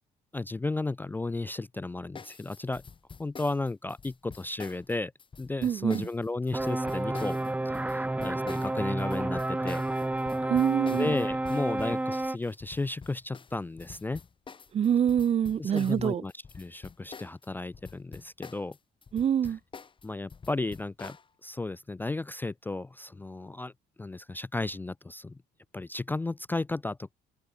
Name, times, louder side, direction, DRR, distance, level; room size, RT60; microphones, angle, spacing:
voice 1, 0.3-2.8 3.2-5.1 5.4-7.4 7.7-9.8 10.9-14.2 15.6-18.8 19.4-19.6 20.0-21.2 21.4-23.7 24.0-25.4 25.7-27.1, left 2 dB, 10° left, 0.4 m, -34 dB
sound 1, 2.1-17.5 17.7-21.3, left 5 dB, 30° left, 3.2 m, -47 dB
voice 2, 5.6-6.0 10.5-11.1 14.7-16.2 19.1-19.6, right 9 dB, 40° right, 0.5 m, -25 dB
sound 2, 6.5-12.4, right 2 dB, 10° right, 1.0 m, -30 dB
cardioid pair, 110°, 17 cm